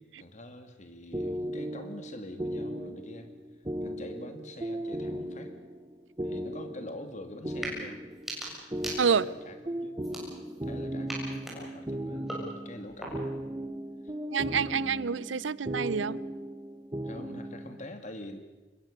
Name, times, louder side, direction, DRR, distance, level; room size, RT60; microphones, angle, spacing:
voice 1, 0.0-3.3 3.8-5.6 6.2-8.0 9.1-10.0 10.6-13.4 14.0-14.1 17.0-18.4, left 1 dB, 40° left, 2.5 m, -45 dB
sound 1, 1.1-17.9, right 1 dB, 20° right, 1.2 m, -37 dB
sound 2, 7.5-7.8 8.1-9.4 10.0-10.7 11.1-13.4, right 1 dB, ahead, 7.0 m, -41 dB
voice 2, 14.3-16.2, right 6 dB, 90° right, 0.7 m, -27 dB
26.0 x 21.5 x 6.8 m
head